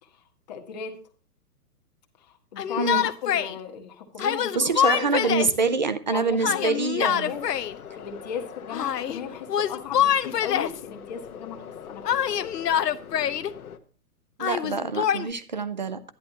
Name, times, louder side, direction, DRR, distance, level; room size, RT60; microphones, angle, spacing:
voice 1, 0.0-1.0 2.2-5.7 6.1-7.5 7.9-12.5, left 7 dB, 25° left, 4 dB, 1.3 m, -37 dB
Yell, 2.6-3.5 4.2-5.6 6.4-7.7 8.7-9.2 9.5-10.8 12.1-13.5 14.4-15.3, left 9 dB, 85° left, 0.9 m, -25 dB
voice 2, 2.8-3.1 4.5-7.3 14.4-16.0, right 4 dB, 30° right, 12 dB, 0.5 m, -25 dB
sound 1, 7.3-13.8, left 7 dB, 65° left, 1.3 m, -43 dB
11.5 x 11.0 x 2.9 m, 0.40 s
hypercardioid pair, 175°, 47 cm